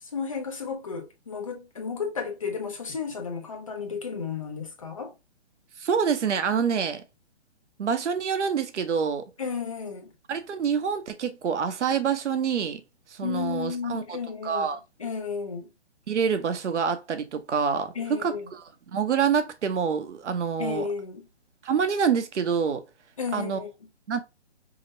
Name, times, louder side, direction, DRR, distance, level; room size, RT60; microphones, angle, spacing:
voice 1, 0.0-5.1 9.4-10.1 13.2-14.7 15.0-15.7 17.9-18.5 20.6-21.3 23.2-23.7, left 5 dB, 30° left, 0.5 m, -33 dB
voice 2, 5.8-7.0 7.8-9.3 10.3-12.8 13.1-14.0 14.4-14.8 16.1-18.6 18.9-20.9 21.6-22.8 23.3-23.6 24.1-24.2, right 6 dB, 80° right, 0.8 m, -26 dB
4.9 x 2.1 x 2.5 m
hypercardioid pair, 170°, 35 cm